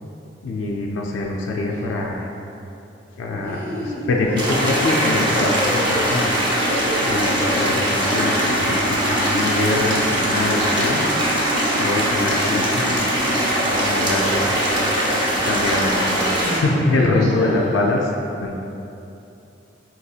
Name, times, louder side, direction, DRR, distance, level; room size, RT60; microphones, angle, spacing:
voice 1, 0.4-2.3 3.2-6.5 7.0-11.0 11.8-15.0 15.4-15.9 16.6-18.1 18.4-18.5, left 2 dB, 90° left, -1 dB, 0.3 m, -24 dB
sound 1, 1.7-2.0 3.4-4.6 5.3-6.4 6.7-7.7, equal, 10° left, 0.7 m, -30 dB
sound 2, 4.4-16.6, right 1 dB, 25° right, 0.5 m, -21 dB
voice 2, 15.7-16.6 16.9-17.2, equal, 75° right, -6 dB, 0.9 m, -27 dB
4.2 x 2.7 x 2.3 m, 2.8 s
head